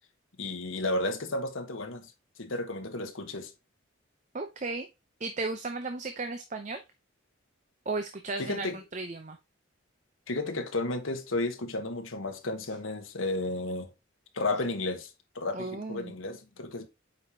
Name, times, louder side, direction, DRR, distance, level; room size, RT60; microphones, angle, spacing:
voice 1, 0.4-2.1 2.4-3.5 8.4-8.8 10.3-13.9 14.3-16.9, left 2 dB, 80° left, 1.3 m, -33 dB
voice 2, 4.3-4.9 5.2-6.8 7.9-9.4 15.5-16.1, right 3 dB, 35° right, 0.6 m, -35 dB
8.2 x 4.9 x 2.8 m
head